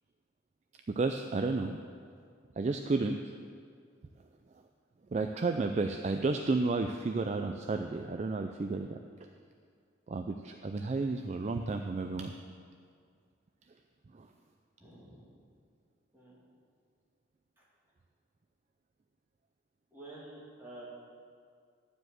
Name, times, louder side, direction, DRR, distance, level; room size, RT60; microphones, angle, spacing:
voice 1, 0.9-1.8 2.6-3.2 5.1-9.0 10.1-12.3 14.1-14.3, right 3 dB, 35° right, 6 dB, 0.3 m, -32 dB
voice 2, 14.8-15.3 16.1-16.4 17.6-17.7 19.9-20.8, right 1 dB, 10° right, -7 dB, 2.4 m, -49 dB
12.0 x 4.9 x 7.8 m, 2.2 s
head